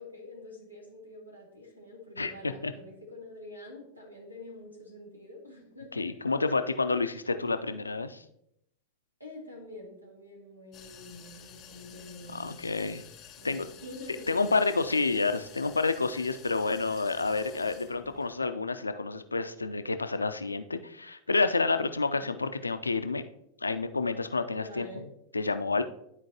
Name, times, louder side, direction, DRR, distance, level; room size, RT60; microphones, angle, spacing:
voice 1, 0.0-6.4 6.9-7.0 9.2-12.8 13.4-15.3 22.0-22.4 24.5-25.1, left 1 dB, 90° right, -1 dB, 2.0 m, -47 dB
voice 2, 5.9-8.2 12.3-13.0 13.4-13.7 14.3-23.2 23.6-25.0 25.3-25.8, left 3 dB, 80° left, 10 dB, 0.4 m, -29 dB
sound 1, 10.7-18.4, left 8 dB, 30° left, 0.7 m, -51 dB
11.5 x 4.5 x 2.9 m, 0.77 s
figure-of-eight pair, 90°, 0 cm